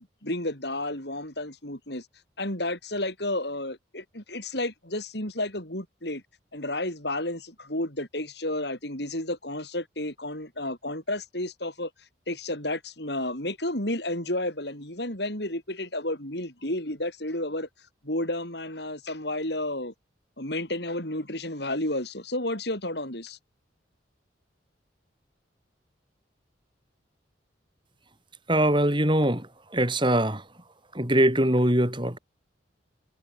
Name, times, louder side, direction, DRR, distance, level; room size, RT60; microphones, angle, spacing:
voice 1, 0.0-2.1 2.4-6.2 6.5-11.9 12.3-17.7 18.0-19.9 20.4-23.4, left 1 dB, 60° left, 8.0 m, -31 dB
voice 2, 28.5-29.5 29.7-30.4 30.9-32.2, right 1 dB, 25° right, 5.8 m, -22 dB
head